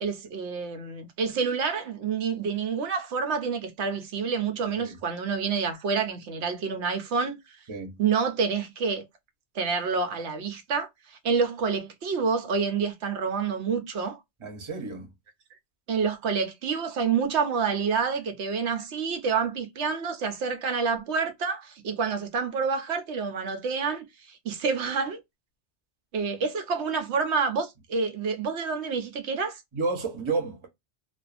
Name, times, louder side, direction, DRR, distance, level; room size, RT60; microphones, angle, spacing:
voice 1, 0.0-7.4 8.0-9.0 9.5-14.2 15.9-25.2 26.1-29.6, right 5 dB, 80° right, 0.9 m, -28 dB
voice 2, 4.6-5.0 7.7-8.0 14.4-15.1 29.7-30.7, right 4 dB, 30° right, 0.8 m, -31 dB
2.5 x 2.4 x 2.4 m
omnidirectional pair, 1.1 m